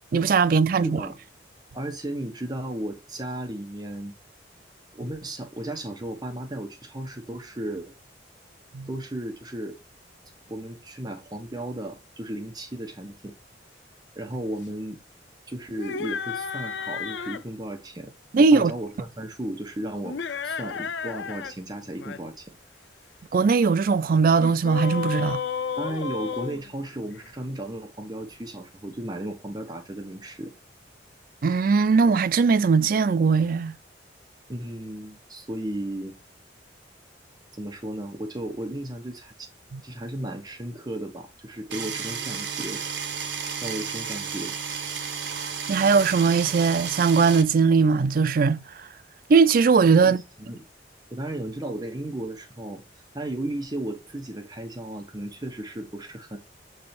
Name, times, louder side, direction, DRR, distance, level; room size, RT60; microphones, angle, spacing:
voice 1, 0.1-1.0 8.7-8.9 18.3-18.7 23.3-25.4 31.4-33.7 39.7-39.8 45.7-48.6 49.3-50.2, right 5 dB, 50° right, 0.4 m, -19 dB
voice 2, 0.7-1.2 1.7-4.1 4.9-7.9 8.9-9.8 10.5-13.3 14.2-15.0 15.5-18.1 18.4-20.2 20.4-22.5 25.8-30.5 34.5-36.1 37.5-39.5 39.8-42.8 43.6-44.5 50.0-50.6 51.1-52.8 53.1-56.4, right 1 dB, 20° right, 0.8 m, -35 dB
sound 1, 15.7-17.5 20.0-21.5 21.8-22.2 24.4-27.3, left 6 dB, 75° left, 0.5 m, -32 dB
sound 2, 41.7-47.4, right 6 dB, 75° right, 1.0 m, -32 dB
6.8 x 3.3 x 4.2 m
head